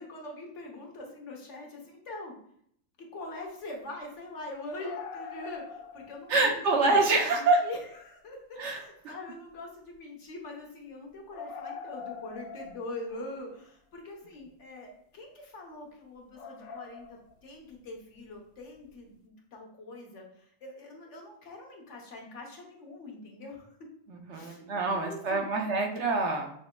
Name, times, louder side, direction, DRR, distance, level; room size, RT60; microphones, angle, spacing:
voice 1, 0.0-2.3 3.0-23.8 24.3-25.5, left 2 dB, 65° left, 0 dB, 1.3 m, -43 dB
sound 1, 4.6-6.4 6.8-6.9 8.0-8.1 8.6-8.7 8.9-9.0 11.3-13.6 16.4-17.3 18.8-18.9, left 6 dB, 90° left, 1.0 m, -43 dB
voice 2, 6.3-7.6 8.6-8.8 24.1-26.5, right 3 dB, 65° right, 2 dB, 1.0 m, -26 dB
6.0 x 3.3 x 2.2 m, 0.67 s
omnidirectional pair, 1.4 m